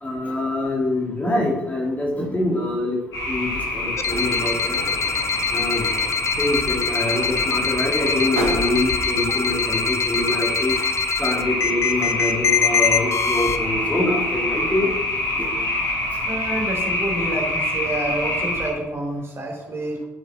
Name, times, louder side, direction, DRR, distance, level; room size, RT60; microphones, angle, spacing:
voice 1, 0.0-3.0 3.3-4.8 5.5-5.9 6.4-10.9 11.2-14.9 15.4-15.5 16.1-16.2, left 1 dB, 20° left, -2 dB, 3.3 m, -25 dB
sound 1, 3.1-18.7, left 1 dB, 55° left, 4.7 m, -26 dB
sound 2, 3.4-8.8, right 1 dB, 80° right, 1.8 m, -35 dB
sound 3, 4.0-13.6, left 7 dB, 40° left, 0.9 m, -25 dB
voice 2, 16.3-20.1, right 1 dB, 35° right, 0 dB, 4.3 m, -28 dB
9.6 x 9.2 x 6.1 m, 1.0 s
figure-of-eight pair, 45°, 7 cm